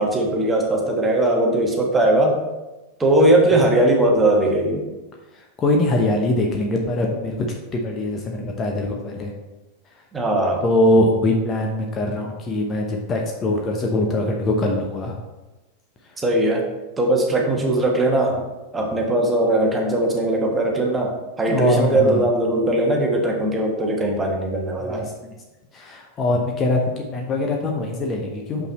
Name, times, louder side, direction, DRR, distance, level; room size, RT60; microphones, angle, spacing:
voice 1, 0.0-2.4 3.0-4.9 10.1-10.6 16.2-16.6 17.0-18.4 18.7-25.0, right 1 dB, 15° right, 0 dB, 1.4 m, -19 dB
voice 2, 5.6-7.6 7.8-9.3 10.6-15.2 21.5-22.3 24.9-25.3 25.7-28.7, left 1 dB, 25° left, 1 dB, 0.9 m, -22 dB
6.0 x 5.6 x 4.2 m, 1.1 s
figure-of-eight pair, 90°, 0 cm